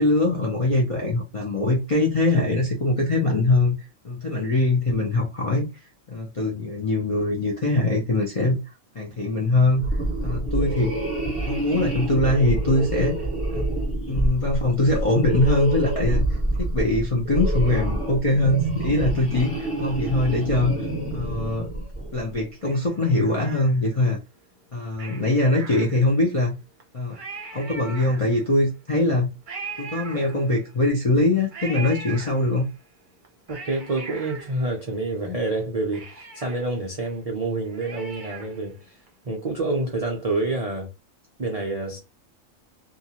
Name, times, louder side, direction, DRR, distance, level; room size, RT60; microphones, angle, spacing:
voice 1, 0.0-3.8 4.0-5.7 6.1-8.6 8.9-9.8 10.2-11.0 11.5-13.2 13.5-13.7 14.1-16.3 16.6-21.7 22.1-24.2 24.7-26.6 26.9-27.2 27.5-29.3 29.8-32.6, left 2 dB, 50° left, 0.4 m, -22 dB
sound 1, 9.7-22.2, right 1 dB, 10° left, 1.3 m, -27 dB
Cat, 22.6-24.1 24.9-26.3 26.8-26.9 27.1-28.6 29.5-30.8 31.5-32.8 33.2-35.3 35.6-35.7 35.9-38.7 39.1-39.2, right 4 dB, 45° right, 0.7 m, -40 dB
voice 2, 33.5-39.0 39.2-40.9 41.4-42.0, right 2 dB, 60° right, 0.3 m, -28 dB
2.5 x 2.3 x 2.8 m
omnidirectional pair, 1.4 m